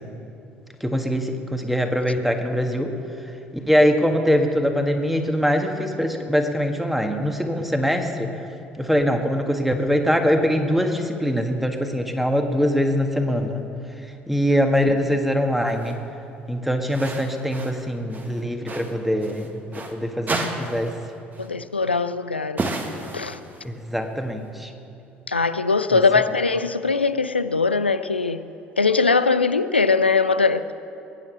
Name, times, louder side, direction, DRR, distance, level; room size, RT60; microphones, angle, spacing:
voice 1, 0.8-2.9 3.7-8.3 8.8-13.6 14.3-16.0 16.5-20.9 23.6-24.7 25.9-26.0, equal, 5° right, 5 dB, 1.7 m, -23 dB
sound 1, 15.7-16.0 16.9-17.8 18.1-20.0 20.3-21.1 21.3-21.5 22.6-23.7, right 2 dB, 30° right, 1.8 m, -31 dB
voice 2, 21.4-22.6 23.1-23.4 25.3-28.4 28.8-30.7, left 4 dB, 90° left, 13 dB, 0.4 m, -21 dB
21.0 x 9.4 x 6.3 m, 2.7 s
figure-of-eight pair, 55°, 6 cm